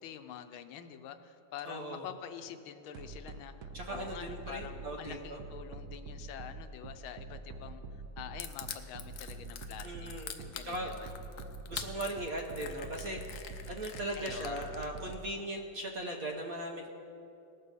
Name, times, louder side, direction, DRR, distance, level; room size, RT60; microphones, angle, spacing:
voice 1, 0.0-10.1 10.4-11.1 14.2-14.6, left 9 dB, 85° left, 9 dB, 1.5 m, -46 dB
voice 2, 1.6-2.1 3.7-5.4 9.8-10.3 10.6-10.9 11.7-16.9, right 1 dB, 55° right, 2 dB, 1.0 m, -39 dB
sound 1, 2.9-15.2, right 3 dB, 75° right, 0.9 m, -45 dB
Crushing, 8.4-15.1, left 9 dB, 65° left, 1.0 m, -44 dB
19.0 x 6.7 x 5.1 m, 2.8 s
omnidirectional pair, 2.3 m